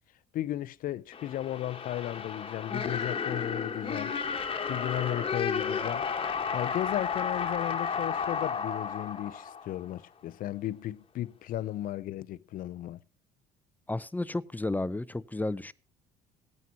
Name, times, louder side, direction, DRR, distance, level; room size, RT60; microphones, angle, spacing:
voice 1, 0.3-4.2 4.7-6.1 6.5-13.0, left 13 dB, 55° left, 0.5 m, -35 dB
sound 1, 1.1-10.0, left 6 dB, 35° left, 1.3 m, -33 dB
voice 2, 13.9-15.7, left 2 dB, 10° left, 0.6 m, -32 dB
18.0 x 9.3 x 2.8 m
hypercardioid pair, 65°, 17 cm